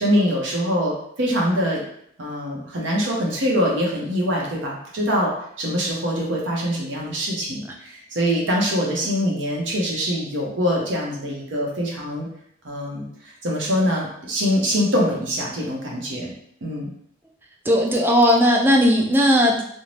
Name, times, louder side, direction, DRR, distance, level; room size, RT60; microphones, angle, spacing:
voice 1, 0.0-1.8 2.2-5.3 5.6-12.3 12.6-13.1 13.4-16.3 16.6-16.9, equal, 90° right, -2 dB, 0.8 m, -23 dB
voice 2, 17.7-19.6, equal, 10° right, 0 dB, 0.3 m, -17 dB
2.6 x 2.1 x 3.1 m, 0.69 s
head